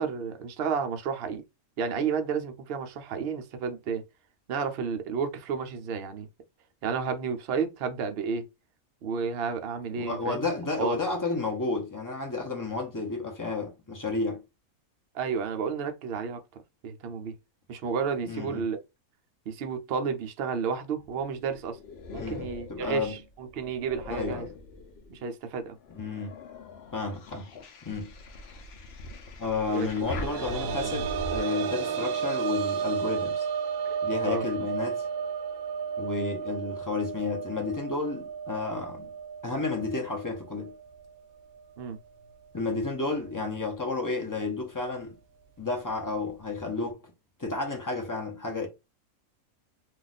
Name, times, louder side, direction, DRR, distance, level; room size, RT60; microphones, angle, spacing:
voice 1, 0.0-1.4 1.8-4.0 4.5-6.3 6.8-8.5 9.0-10.5 10.8-11.0 15.1-16.4 16.8-17.3 17.7-18.8 19.5-21.8 22.1-24.5 25.1-25.8 29.7-29.9 33.9-34.0 34.2-34.5 41.8-42.0, right 6 dB, 60° right, 0.7 m, -31 dB
voice 2, 9.9-14.4 18.3-18.7 22.1-23.2 24.1-24.5 25.9-26.4 26.9-27.5 27.8-28.1 29.4-33.5 34.0-35.1 36.0-39.1 39.4-40.7 42.5-45.2 45.6-47.1 47.4-48.7, left 3 dB, 25° left, 0.4 m, -31 dB
sound 1, 21.0-25.2 25.7-31.4, left 2 dB, 60° left, 0.7 m, -41 dB
sound 2, 29.7-41.2 41.5-41.6 43.2-43.3, right 7 dB, 75° right, 1.0 m, -33 dB
2.5 x 2.3 x 4.0 m
omnidirectional pair, 1.5 m